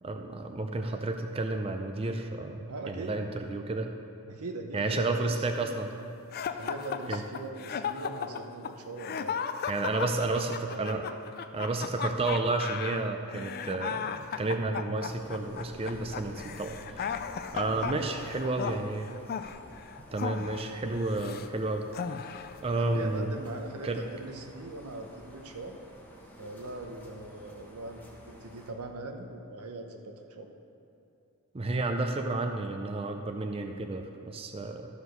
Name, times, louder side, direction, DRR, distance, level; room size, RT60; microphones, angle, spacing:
voice 1, 0.0-4.0 4.7-5.9 7.1-7.2 9.7-11.1 11.5-17.2 17.5-19.1 20.1-21.9 22.6-23.3 23.8-24.0 31.5-34.9, right 2 dB, 25° right, 4 dB, 0.4 m, -31 dB
voice 2, 2.7-3.1 4.3-5.7 6.5-9.7 10.7-11.0 17.5-18.2 22.7-25.8 26.4-30.5, right 2 dB, 85° right, 4 dB, 0.9 m, -41 dB
sound 1, 6.3-21.5 21.9-22.6, left 7 dB, 45° left, 0.3 m, -36 dB
sound 2, 15.1-28.7, equal, 10° left, 1.1 m, -51 dB
12.5 x 4.9 x 6.4 m, 2.7 s
head